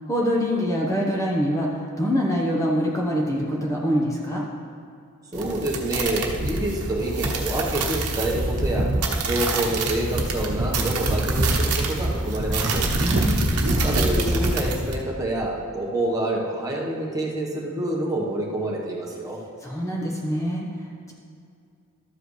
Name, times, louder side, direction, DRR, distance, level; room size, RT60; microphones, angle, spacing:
voice 1, 0.0-4.5 13.0-13.5 19.6-21.1, equal, 15° left, -3 dB, 1.0 m, -25 dB
voice 2, 5.3-8.9 9.2-12.8 13.8-19.4, right 1 dB, 15° right, -3 dB, 1.2 m, -27 dB
sound 1, 5.3-14.9, right 2 dB, 75° right, 1.0 m, -25 dB
12.5 x 7.7 x 3.2 m, 2.4 s
head